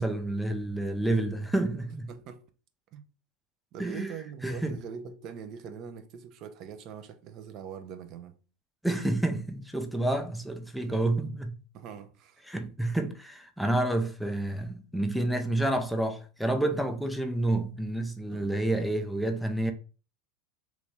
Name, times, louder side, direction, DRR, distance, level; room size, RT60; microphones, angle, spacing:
voice 1, 0.0-2.1 3.8-4.1 4.4-4.8 8.8-11.6 12.5-19.7, right 1 dB, ahead, 0.6 m, -29 dB
voice 2, 2.1-2.4 2.9-3.0 3.7-8.4 10.9-11.1 11.7-12.5 18.3-18.6, right 7 dB, 50° right, 0.5 m, -43 dB
3.1 x 2.6 x 3.5 m
hypercardioid pair, 90°, 0 cm